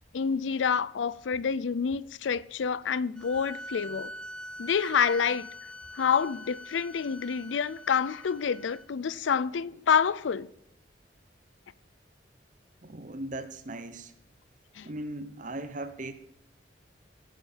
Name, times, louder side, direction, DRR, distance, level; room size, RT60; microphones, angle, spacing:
voice 1, 0.1-4.1 4.6-5.5 5.9-10.5 14.8-14.9, left 6 dB, 85° left, 0.4 m, -28 dB
sound 1, 3.2-8.9, equal, 5° left, 0.9 m, -43 dB
voice 2, 12.8-14.1 14.8-16.1, right 1 dB, 45° right, 0.9 m, -38 dB
17.0 x 7.3 x 7.4 m
head